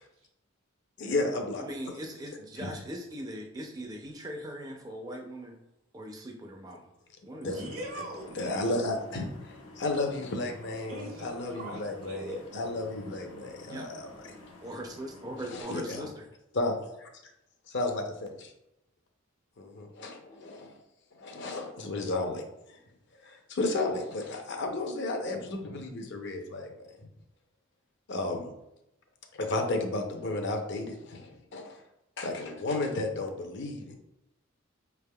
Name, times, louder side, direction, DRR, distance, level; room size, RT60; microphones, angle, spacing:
voice 1, 1.0-1.6 2.6-2.7 7.4-7.6 8.3-9.3 9.8-14.1 15.5-16.0 16.5-17.1 17.7-18.5 19.6-20.8 21.2-22.4 22.7-22.8 23.2-26.7 28.1-28.5 29.3-31.8 32.2-34.0, left 2 dB, 55° left, 3 dB, 0.6 m, -33 dB
voice 2, 1.6-5.6 5.9-6.9 7.2-7.7 13.7-13.9 14.6-16.3, equal, 15° right, 2 dB, 0.4 m, -40 dB
sound 1, 7.5-15.6, left 2 dB, 85° left, 0.8 m, -51 dB
voice 3, 7.5-8.5 10.9-12.4, right 1 dB, 80° right, 0 dB, 1.1 m, -41 dB
5.3 x 3.4 x 2.2 m, 0.86 s
head